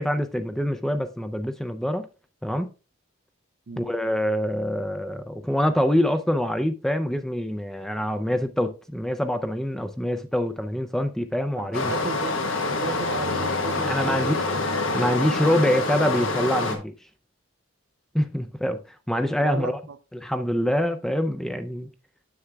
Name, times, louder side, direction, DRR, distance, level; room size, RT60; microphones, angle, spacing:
voice 1, 0.0-2.1 2.4-2.7 3.8-11.9 13.7-14.3 14.9-16.9 18.1-18.8 19.1-19.8 20.1-21.9, equal, ahead, 0.4 m, -25 dB
voice 2, 11.6-14.5 19.4-19.7, right 5 dB, 60° right, 0.4 m, -35 dB
Stream, 11.7-16.8, left 3 dB, 75° left, 1.3 m, -26 dB
9.8 x 7.1 x 2.3 m
head